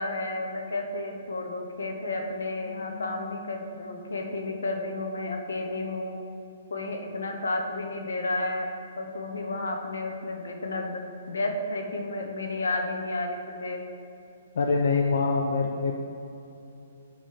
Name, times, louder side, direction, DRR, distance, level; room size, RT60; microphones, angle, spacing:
voice 1, 0.0-6.2 6.7-8.7 9.0-11.0 11.3-13.8, left 2 dB, 90° left, 2 dB, 0.9 m, -32 dB
sound 1, 2.6-6.0, left 6 dB, 15° right, 1.4 m, -50 dB
voice 2, 14.5-15.9, left 4 dB, 70° left, 1 dB, 0.5 m, -24 dB
8.5 x 3.2 x 5.7 m, 2.8 s
hypercardioid pair, 155°, 0 cm